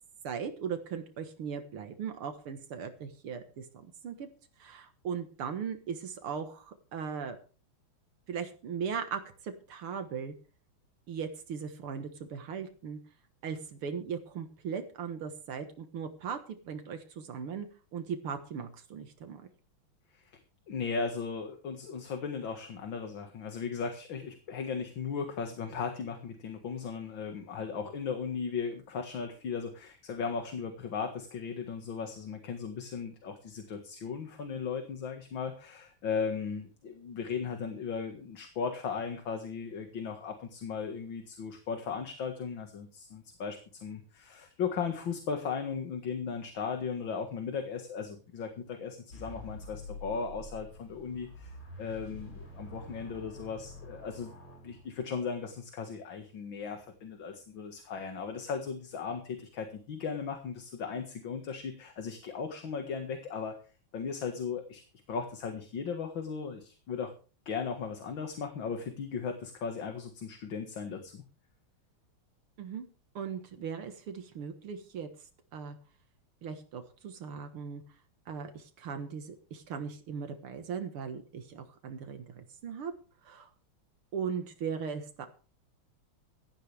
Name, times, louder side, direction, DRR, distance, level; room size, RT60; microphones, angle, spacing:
voice 1, 0.2-4.3 4.6-7.4 8.3-10.3 11.1-13.0 13.4-16.4 16.7-17.7 17.9-19.4 72.6-72.9 73.2-75.1 75.5-75.8 76.4-77.8 78.3-82.9 83.2-83.5 84.1-85.3, right 6 dB, 85° right, 7 dB, 2.4 m, -38 dB
voice 2, 20.7-54.3 54.6-63.6 63.9-67.1 67.5-71.2, left 6 dB, 65° left, 5 dB, 2.5 m, -37 dB
sound 1, 49.1-55.3, left 1 dB, 80° left, 6.9 m, -47 dB
17.0 x 13.0 x 3.5 m, 0.37 s
omnidirectional pair, 2.3 m